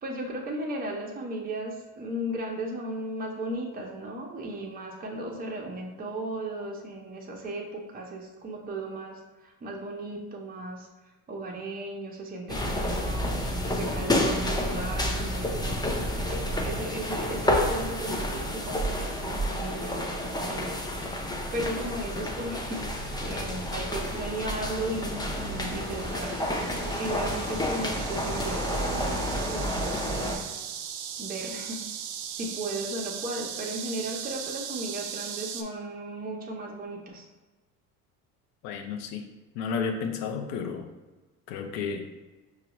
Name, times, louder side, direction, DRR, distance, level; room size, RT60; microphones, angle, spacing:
voice 1, 0.0-10.9 11.3-13.3 13.7-20.8 21.2-26.6 26.9-30.5 31.2-31.8 32.3-37.2, right 1 dB, 20° right, -1 dB, 0.8 m, -36 dB
sound 1, 12.5-30.4, left 1 dB, 10° left, 0.5 m, -30 dB
sound 2, 22.6-35.6, right 8 dB, 55° right, 0.5 m, -39 dB
voice 2, 38.6-39.3 39.5-40.9 41.5-42.1, left 5 dB, 70° left, 6 dB, 0.7 m, -32 dB
4.7 x 2.4 x 2.9 m, 1.2 s
supercardioid pair, 85°, 44 cm